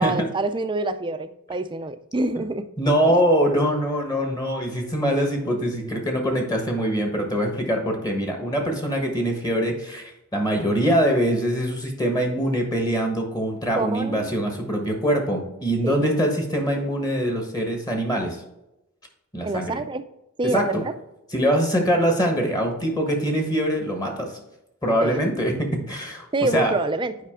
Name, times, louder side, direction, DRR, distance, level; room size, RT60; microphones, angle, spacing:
voice 1, 0.0-2.7 3.1-3.2 13.7-14.5 15.8-16.1 19.4-20.0 20.4-20.9 25.0-25.2 26.3-27.1, right 2 dB, 20° right, 10 dB, 0.4 m, -26 dB
voice 2, 2.8-18.4 19.3-19.8 20.5-20.8 21.3-24.4 24.8-25.5 25.9-26.2 26.5-26.7, equal, 15° left, 3 dB, 1.2 m, -23 dB
8.2 x 5.1 x 3.6 m, 0.89 s
head